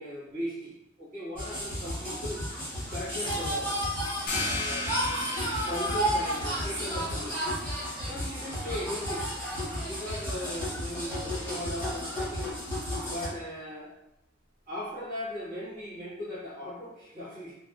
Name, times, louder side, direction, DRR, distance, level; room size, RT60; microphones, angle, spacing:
voice 1, 0.0-2.4 2.9-3.9 4.4-4.9 5.6-7.4 8.0-9.2 9.8-12.6 13.1-13.9 14.7-17.5, left 1 dB, 45° right, -9 dB, 1.3 m, -38 dB
sound 1, 1.4-13.3, equal, 10° left, 1.1 m, -32 dB
sound 2, 4.3-9.6, left 2 dB, 45° left, 0.7 m, -37 dB
3.3 x 2.2 x 2.4 m, 0.84 s
head